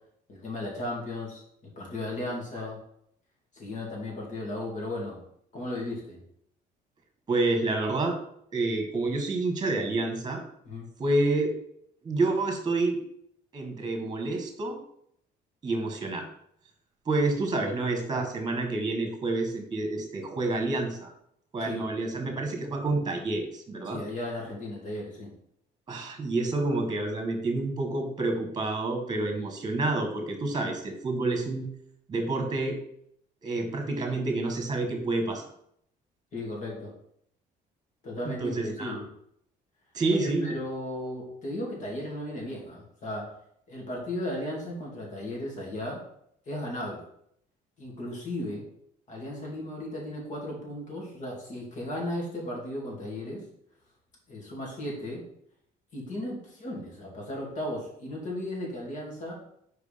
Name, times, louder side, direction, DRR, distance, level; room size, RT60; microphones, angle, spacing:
voice 1, 0.3-2.8 3.5-5.2 5.5-6.2 10.6-10.9 21.6-21.9 23.8-25.3 36.3-36.9 38.0-39.1 40.1-43.4 43.7-46.0 46.5-47.1 47.8-48.6 49.1-53.4 54.3-55.2 55.9-59.4, left 1 dB, 50° left, -2 dB, 2.6 m, -35 dB
voice 2, 7.3-8.2 8.5-10.4 11.0-11.5 12.0-13.0 13.5-14.8 15.6-16.3 17.0-21.1 21.5-24.0 25.9-31.7 32.1-32.8 33.4-35.4 38.2-39.0 39.9-40.5, right 2 dB, 25° right, 4 dB, 1.6 m, -28 dB
4.9 x 4.7 x 5.1 m, 0.71 s
cardioid pair, 110°, 17 cm